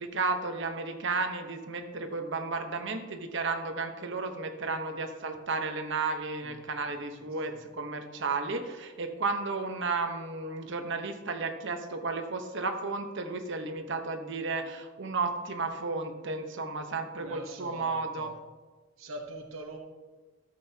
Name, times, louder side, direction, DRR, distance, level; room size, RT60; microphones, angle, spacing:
voice 1, 0.0-18.3, right 3 dB, 65° right, 5 dB, 1.0 m, -33 dB
voice 2, 6.4-7.0 7.5-7.6 17.2-18.3 19.0-19.8, right 2 dB, 90° right, 2 dB, 1.1 m, -43 dB
13.5 x 7.9 x 2.9 m, 1.3 s
head